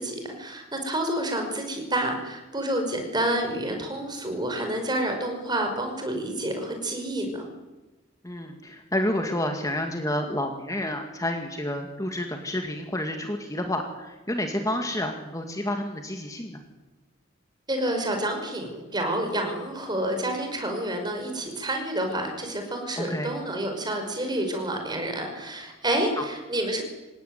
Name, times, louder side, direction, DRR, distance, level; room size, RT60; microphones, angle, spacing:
voice 1, 0.0-7.5 17.7-26.8, right 1 dB, 20° right, 4 dB, 5.5 m, -29 dB
voice 2, 8.2-16.6 23.0-23.3 26.2-26.3, left 1 dB, 15° left, 4 dB, 2.2 m, -29 dB
26.5 x 17.5 x 9.6 m, 1.1 s
head